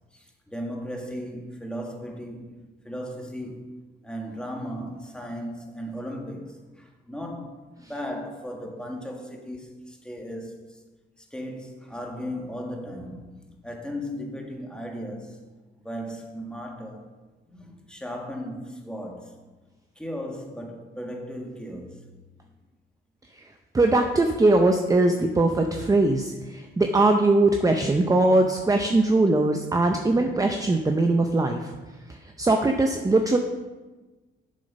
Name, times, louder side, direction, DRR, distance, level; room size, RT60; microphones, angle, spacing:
voice 1, 0.1-2.5 2.9-3.6 4.0-10.8 11.2-15.4 15.8-17.0 17.5-19.4 20.0-22.0, equal, 5° left, 1.7 m, -36 dB
voice 2, 23.7-31.7 32.4-33.4, right 2 dB, 15° right, 0.6 m, -21 dB
7.6 x 6.8 x 5.4 m
cardioid pair, 90°, 20 cm